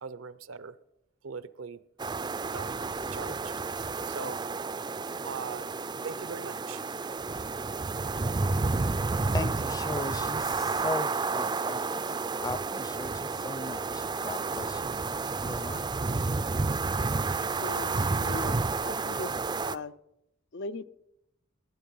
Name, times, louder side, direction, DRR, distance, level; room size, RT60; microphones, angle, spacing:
voice 1, 0.0-0.8 1.2-1.8 2.5-2.8 3.1-4.4 5.2-5.7 6.0-6.8, right 5 dB, 75° right, 16 dB, 0.6 m, -41 dB
sound 1, 2.0-19.8, right 3 dB, 20° right, 0.4 m, -31 dB
voice 2, 9.3-14.9 15.4-16.0, left 2 dB, 20° left, 15 dB, 0.6 m, -38 dB
voice 3, 17.4-18.6 18.8-19.4 19.6-19.9 20.5-20.8, left 3 dB, 60° left, 16 dB, 0.6 m, -39 dB
19.5 x 9.4 x 5.5 m, 0.83 s
head